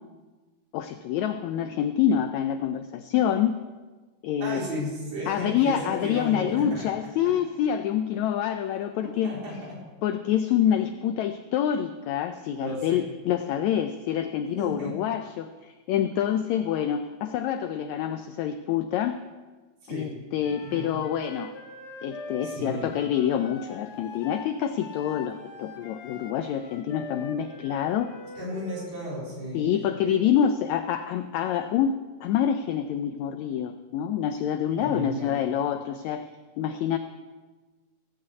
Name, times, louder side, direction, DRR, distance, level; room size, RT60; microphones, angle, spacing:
voice 1, 0.7-3.5 4.2-4.6 5.3-9.3 10.0-19.2 19.9-21.5 22.0-28.1 29.5-31.9 32.2-36.2 36.6-37.0, left 9 dB, 90° left, 9 dB, 1.6 m, -26 dB
voice 2, 4.4-6.9 9.2-9.8 12.6-13.1 14.6-14.9 19.8-20.1 20.6-20.9 22.4-22.9 28.4-29.7 30.0-30.1 34.8-35.4, equal, 80° right, -6 dB, 6.0 m, -34 dB
Wind instrument woodwind instrument, 20.4-28.9, left 2 dB, 55° left, 1.9 m, -43 dB
16.5 x 5.8 x 8.0 m, 1.3 s
omnidirectional pair, 3.9 m